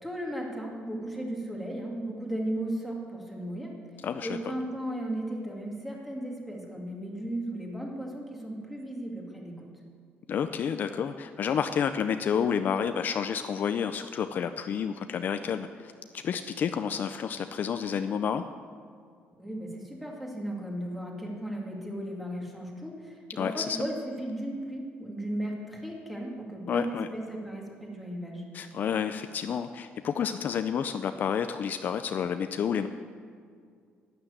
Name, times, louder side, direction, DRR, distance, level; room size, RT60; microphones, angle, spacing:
voice 1, 0.0-3.7 4.2-9.7 19.4-28.4, right 1 dB, ahead, -1 dB, 2.2 m, -35 dB
voice 2, 4.0-4.4 10.3-18.4 23.4-23.8 26.7-27.1 28.5-32.9, left 7 dB, 45° left, 9 dB, 0.5 m, -30 dB
11.5 x 10.5 x 8.1 m, 2.2 s
cardioid pair, 150°, 4 cm